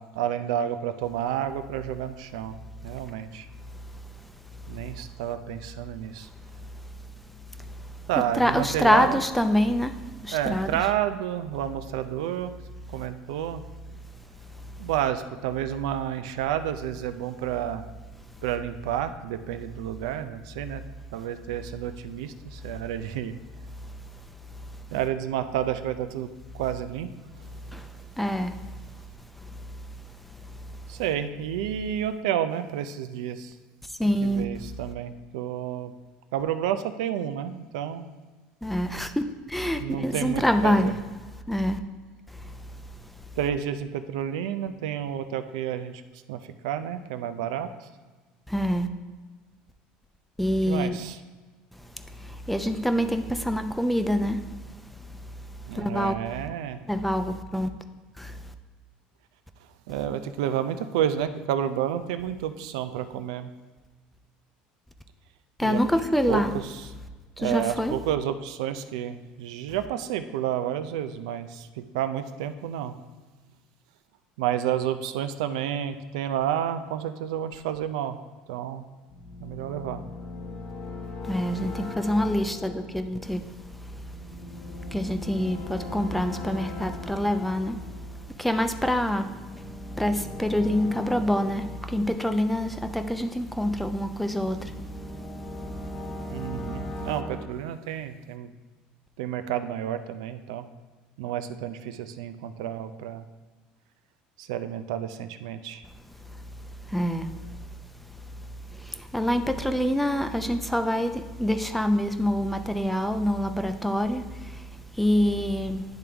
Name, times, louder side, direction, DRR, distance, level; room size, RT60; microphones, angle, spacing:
voice 1, 0.0-2.6 2.8-3.5 4.7-6.3 8.1-9.2 10.3-12.5 12.9-13.6 14.8-17.9 18.4-20.8 21.1-23.4 24.9-26.3 26.5-27.1 30.9-33.5 34.0-35.9 36.3-38.1 39.8-40.9 43.4-46.0 46.3-47.9 50.7-51.2 55.7-56.8 59.9-63.5 65.6-65.8 66.3-66.9 67.4-72.9 74.4-78.2 78.5-78.8 79.4-80.0 96.3-98.5 99.2-100.7 101.2-103.3 104.4-105.8, right 10 dB, 90° right, 0.4 m, -30 dB
voice 2, 8.4-10.8 14.6-14.7 27.7-29.8 30.0-31.0 34.0-34.5 38.6-40.9 41.5-41.8 42.3-43.1 48.5-48.9 50.4-51.0 51.8-55.1 55.7-56.1 56.9-57.7 58.2-58.4 65.6-66.5 67.4-68.0 81.2-84.1 84.5-87.9 88.4-89.7 89.9-95.0 95.8-95.9 96.2-96.3 106.3-107.7 108.1-108.2 108.7-115.9, equal, 5° left, 0.5 m, -27 dB
sound 1, 79.1-93.4 93.9-97.5, left 2 dB, 35° left, 1.1 m, -39 dB
10.0 x 3.6 x 3.4 m
supercardioid pair, 100°, 3 cm